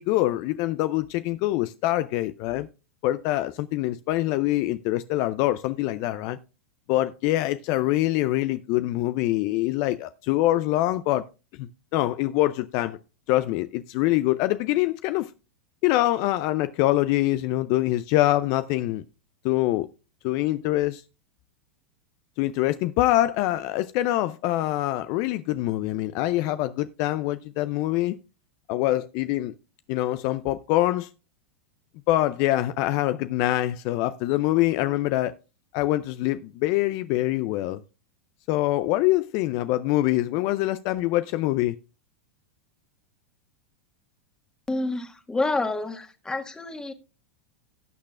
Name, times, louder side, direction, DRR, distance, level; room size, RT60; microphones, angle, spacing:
voice 1, 0.0-2.7 3.0-6.4 6.9-11.2 11.6-13.0 13.3-15.3 15.8-19.0 19.4-19.9 20.2-21.0 22.4-28.2 28.7-29.5 29.9-31.1 32.1-35.3 35.7-37.8 38.5-41.7, left 16 dB, 50° left, 0.4 m, -24 dB
voice 2, 44.7-46.9, left 2 dB, 10° left, 1.5 m, -28 dB
17.5 x 6.5 x 2.4 m
hypercardioid pair, 105°, 7 cm